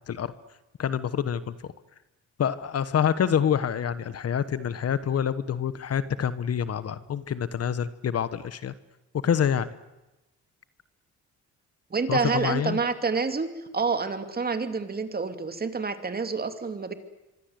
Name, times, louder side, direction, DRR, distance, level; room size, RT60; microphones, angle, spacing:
voice 1, 0.8-1.7 2.4-8.7 9.2-9.7 12.1-12.8, left 8 dB, 55° left, 14 dB, 1.3 m, -27 dB
voice 2, 11.9-16.9, right 4 dB, 30° right, 8 dB, 2.6 m, -28 dB
25.5 x 24.0 x 8.1 m, 1.0 s
cardioid pair, 90°, 30 cm